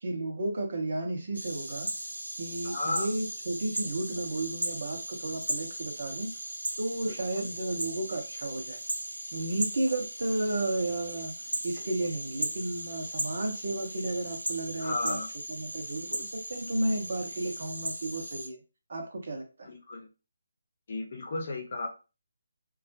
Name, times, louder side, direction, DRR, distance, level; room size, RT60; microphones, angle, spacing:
voice 1, 0.0-1.9 2.4-6.3 6.8-8.8 9.3-11.3 11.6-15.2 15.5-18.6 18.9-19.7, right 2 dB, 55° right, 3 dB, 0.8 m, -33 dB
sound 1, 1.3-18.5, right 1 dB, 85° right, 0.5 m, -37 dB
voice 2, 2.6-3.1 7.1-7.5 14.8-15.3 19.6-20.1 20.9-21.9, left 2 dB, 50° left, 2 dB, 0.8 m, -34 dB
2.3 x 2.1 x 2.6 m, 0.31 s
figure-of-eight pair, 150°, 0 cm